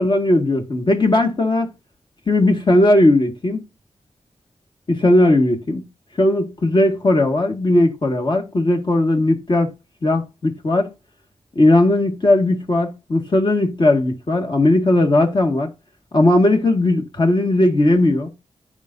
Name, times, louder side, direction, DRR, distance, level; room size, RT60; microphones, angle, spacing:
voice 1, 0.0-1.7 2.3-3.6 4.9-5.8 6.2-9.7 10.0-10.9 11.6-15.7 16.1-18.3, left 1 dB, 45° left, 1.9 m, -17 dB
14.5 x 5.0 x 2.7 m
wide cardioid pair, 115°, 11 cm